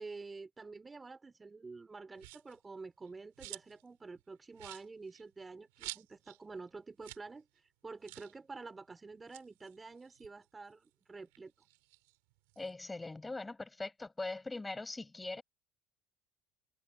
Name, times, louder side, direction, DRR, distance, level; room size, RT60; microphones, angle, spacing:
voice 1, 0.0-11.5, right 4 dB, 20° right, 4.1 m, -49 dB
sound 1, 2.2-2.6 3.0-3.9 4.2-4.3 4.5-6.4 6.7-6.8 7.0-7.3 7.6-7.7 8.0-8.4 9.1-10.9 11.3-12.7, right 26 dB, 80° right, 7.5 m, -50 dB
voice 2, 12.6-15.4, left 2 dB, 15° left, 7.8 m, -41 dB
supercardioid pair, 85°, 0 cm